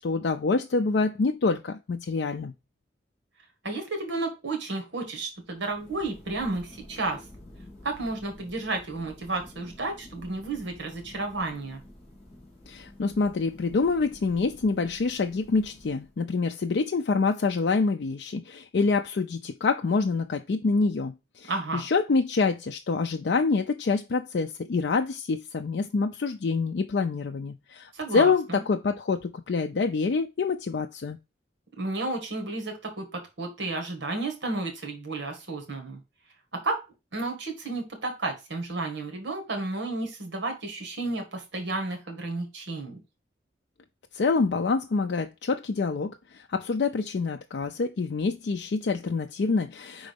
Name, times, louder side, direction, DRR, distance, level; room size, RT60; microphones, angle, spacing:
voice 1, 0.0-2.5 12.7-31.2 44.1-50.1, left 4 dB, 65° left, 0.4 m, -26 dB
voice 2, 3.6-7.2 7.8-11.8 21.5-21.8 27.9-28.6 31.8-36.0 36.5-36.8 37.1-43.0, right 2 dB, 75° right, 1.6 m, -32 dB
Thunder, 5.4-16.4, left 1 dB, 35° left, 2.1 m, -50 dB
5.1 x 3.8 x 5.2 m
head